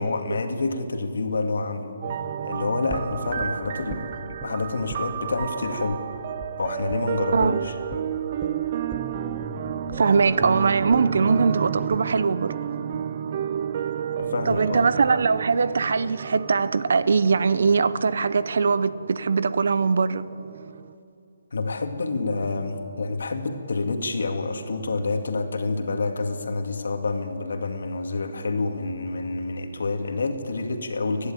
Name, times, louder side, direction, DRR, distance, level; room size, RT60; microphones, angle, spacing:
voice 1, 0.0-2.0 2.4-4.1 4.4-6.0 6.6-7.8 14.2-14.8 21.5-31.3, left 3 dB, 70° left, 2.1 m, -28 dB
sound 1, 2.0-20.9, right 9 dB, 25° right, 0.4 m, -32 dB
sound 2, 2.9-4.5 4.9-5.1 5.4-5.5 5.9-6.0 6.4-6.5 6.9-7.1 7.4-7.5 7.9-13.9 14.2-14.3, right 1 dB, 5° right, 0.9 m, -40 dB
voice 2, 9.9-12.5 14.5-20.3, right 5 dB, 55° right, 0.7 m, -21 dB
29.5 x 11.0 x 9.0 m
hypercardioid pair, 180°, 0 cm